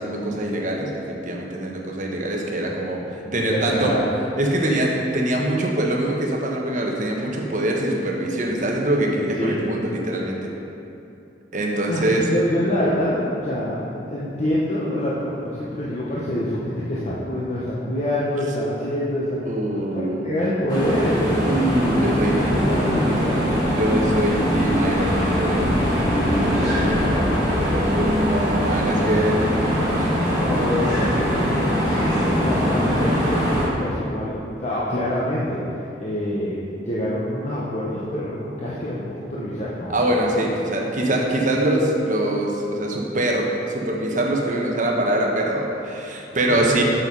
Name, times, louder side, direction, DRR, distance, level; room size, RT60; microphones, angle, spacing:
voice 1, 0.0-3.9 4.4-10.5 11.5-12.3 19.4-20.3 21.4-22.6 23.7-25.8 26.4-27.0 27.6-29.4 30.0-30.1 39.9-46.8, right 1 dB, 45° right, -1 dB, 1.1 m, -24 dB
voice 2, 3.2-4.0 9.4-9.6 11.9-19.4 19.7-21.3 22.5-23.4 26.5-27.5 29.0-29.4 30.3-35.6 36.0-40.2 46.5-46.8, left 1 dB, 40° left, -8 dB, 1.0 m, -26 dB
sound 1, 20.7-33.7, equal, 20° left, 2.1 m, -21 dB
7.6 x 6.3 x 5.5 m, 2.8 s
head